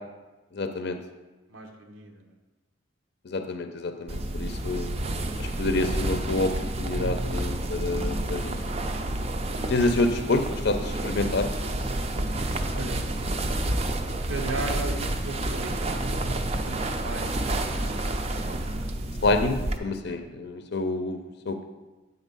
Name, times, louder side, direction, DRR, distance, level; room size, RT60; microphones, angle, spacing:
voice 1, 0.5-1.0 3.2-4.9 5.4-8.6 9.7-11.5 19.2-21.6, left 2 dB, 55° left, 7 dB, 0.6 m, -28 dB
voice 2, 1.5-2.4 9.6-9.7 12.7-13.2 14.3-16.0 16.6-17.8 20.0-20.2, right 2 dB, 90° right, 2 dB, 0.9 m, -37 dB
sound 1, 4.1-19.8, right 1 dB, 30° right, 0.5 m, -29 dB
8.2 x 4.1 x 5.3 m, 1.1 s
head